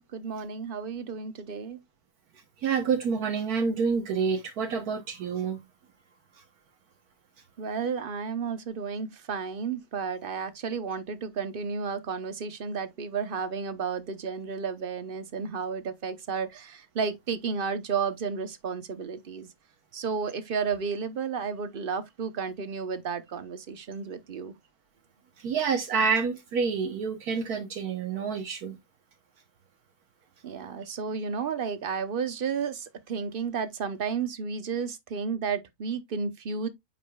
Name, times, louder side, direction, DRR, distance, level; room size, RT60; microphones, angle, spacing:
voice 1, 0.0-1.8 7.6-19.5 19.9-24.5 30.4-36.7, right 5 dB, 45° right, 0.8 m, -32 dB
voice 2, 2.6-5.6 25.4-28.8, right 5 dB, 75° right, 1.4 m, -28 dB
9.1 x 5.1 x 2.2 m
omnidirectional pair, 1.6 m